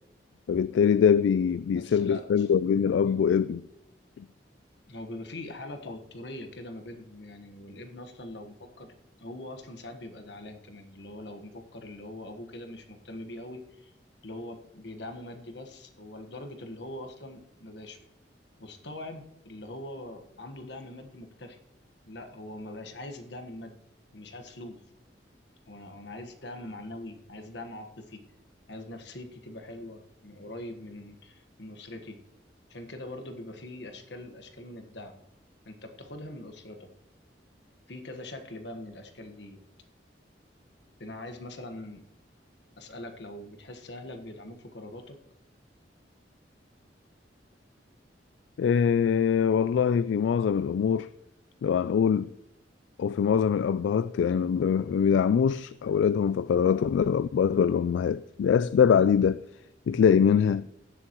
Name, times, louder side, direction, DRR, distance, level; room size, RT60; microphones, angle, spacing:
voice 1, 0.5-3.6 4.2-4.3 48.6-51.1 51.6-52.3 53.0-59.4 59.9-60.7, left 7 dB, 85° left, 0.3 m, -23 dB
voice 2, 1.7-2.5 2.9-3.3 4.9-13.9 14.2-18.0 18.6-21.6 22.1-23.8 24.1-24.8 25.7-28.3 28.7-32.2 32.7-35.2 35.6-36.9 37.9-39.6 41.0-42.1 42.8-45.2, left 1 dB, 70° left, 1.4 m, -42 dB
17.0 x 7.1 x 3.0 m
head